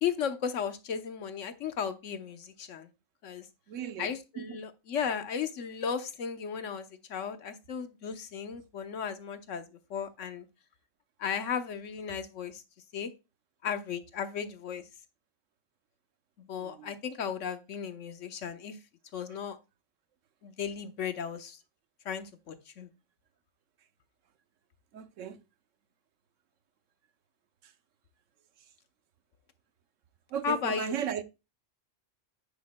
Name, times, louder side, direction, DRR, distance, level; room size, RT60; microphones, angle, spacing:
voice 1, 0.0-2.9 3.2-3.5 4.0-10.5 11.2-12.6 12.9-13.1 13.6-14.9 16.4-18.8 19.1-19.6 20.4-21.6 22.0-22.9 30.4-30.9, left 7 dB, 80° left, 1.3 m, -35 dB
voice 2, 3.7-4.1 4.4-4.6 16.6-16.9 24.9-25.4 27.6-27.7 30.3-31.2, right 8 dB, 90° right, 1.1 m, -36 dB
9.4 x 8.2 x 2.2 m
omnidirectional pair, 1.3 m